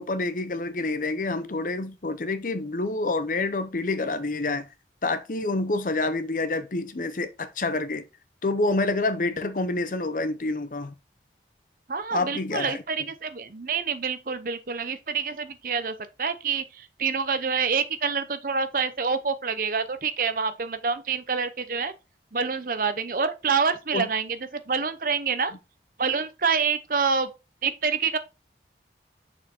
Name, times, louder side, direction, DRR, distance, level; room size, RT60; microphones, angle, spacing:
voice 1, 0.0-4.7 5.0-8.0 8.4-10.9 12.1-12.8 23.9-24.1, left 2 dB, 50° left, 0.7 m, -27 dB
voice 2, 11.9-21.9 22.3-25.5 26.0-27.3 27.6-28.2, right 5 dB, 50° right, 0.7 m, -27 dB
6.5 x 4.4 x 4.3 m
head